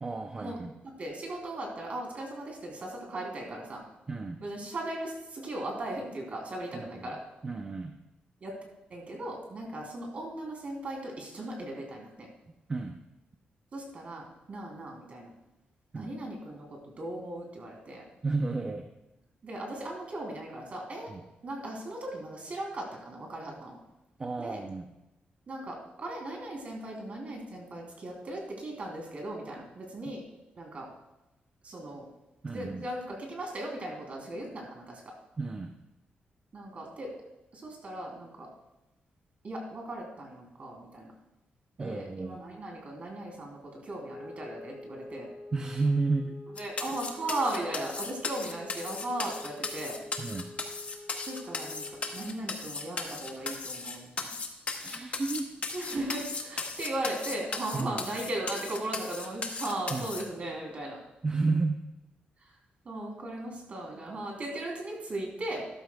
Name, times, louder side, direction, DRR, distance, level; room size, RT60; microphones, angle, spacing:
voice 1, 0.0-0.7 4.1-4.4 6.7-7.2 7.4-7.9 12.7-13.0 15.9-16.1 18.2-18.9 21.1-21.2 24.2-24.9 32.4-32.8 35.4-35.7 41.8-42.4 45.5-46.4 50.2-50.5 54.8-55.5 57.7-58.0 59.9-60.1 61.2-61.8, right 3 dB, 25° right, 5 dB, 0.6 m, -32 dB
voice 2, 1.0-3.8 4.4-7.2 8.4-8.6 8.9-12.3 13.7-15.3 15.9-18.0 19.4-21.1 21.4-23.8 24.4-24.6 25.5-30.2 30.5-30.9 31.6-32.1 32.5-35.1 36.5-37.1 37.5-38.5 39.4-41.1 41.8-45.3 46.6-50.0 51.2-51.9 52.1-54.3 55.7-61.0 62.4-62.5 62.8-65.7, right 1 dB, 45° right, 0 dB, 3.2 m, -37 dB
sound 1, 44.0-52.4, left 2 dB, 5° left, 2.2 m, -47 dB
sound 2, 46.6-60.2, left 4 dB, 40° left, 1.1 m, -36 dB
13.0 x 12.5 x 2.3 m, 0.96 s
wide cardioid pair, 145°, 3 cm